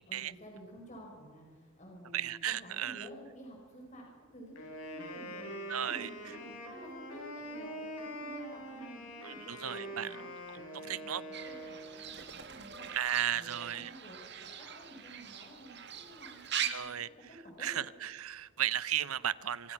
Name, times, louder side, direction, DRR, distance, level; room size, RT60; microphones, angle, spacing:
voice 1, 0.0-4.0 4.3-5.5 5.8-10.3 10.7-12.9 13.3-17.1 17.4-17.9, equal, 35° left, 0 dB, 5.3 m, -52 dB
voice 2, 2.1-3.1 5.7-6.1 9.2-10.1 10.5-11.2 12.9-13.9 16.7-17.1 17.6-19.7, right 10 dB, 80° right, 18 dB, 0.8 m, -35 dB
Wind instrument woodwind instrument, 4.6-12.2, equal, 85° left, 6.9 m, -44 dB
Fowl / Bird, 11.3-16.7, right 9 dB, 50° right, 1.9 m, -41 dB
26.5 x 25.5 x 5.9 m, 1.5 s
head